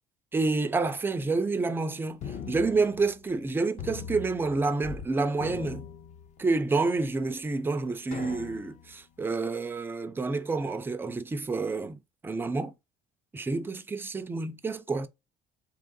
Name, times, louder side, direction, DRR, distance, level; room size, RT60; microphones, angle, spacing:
voice 1, 0.3-5.8 6.4-12.8 13.3-15.1, right 3 dB, 10° right, 0.4 m, -29 dB
sound 1, 2.2-3.4 3.8-5.1 5.3-6.7 7.2-7.3 8.1-8.9, left 7 dB, 45° left, 0.6 m, -40 dB
3.6 x 2.8 x 3.8 m
cardioid pair, 155°, 17 cm